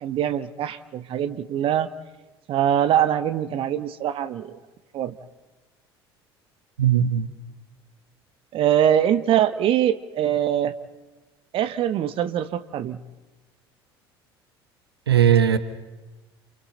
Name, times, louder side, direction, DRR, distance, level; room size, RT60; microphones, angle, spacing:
voice 1, 0.0-1.9 2.5-4.6 4.9-5.1 8.5-10.7 11.5-13.0, right 10 dB, 45° right, 1.1 m, -23 dB
voice 2, 6.8-7.3 15.1-15.6, right 9 dB, 75° right, 1.1 m, -18 dB
29.0 x 28.5 x 3.9 m
figure-of-eight pair, 60°, 13 cm